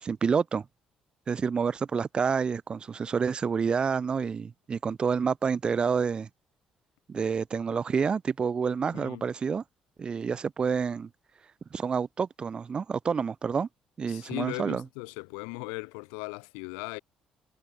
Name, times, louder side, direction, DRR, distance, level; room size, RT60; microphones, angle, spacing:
voice 1, 0.0-0.6 1.3-6.3 7.1-9.6 10.0-11.1 11.7-13.7 14.0-14.8, right 6 dB, 45° right, 1.0 m, -28 dB
voice 2, 8.9-9.2 14.1-17.0, left 40 dB or more, 90° left, 1.1 m, -38 dB
supercardioid pair, 60°, 2 cm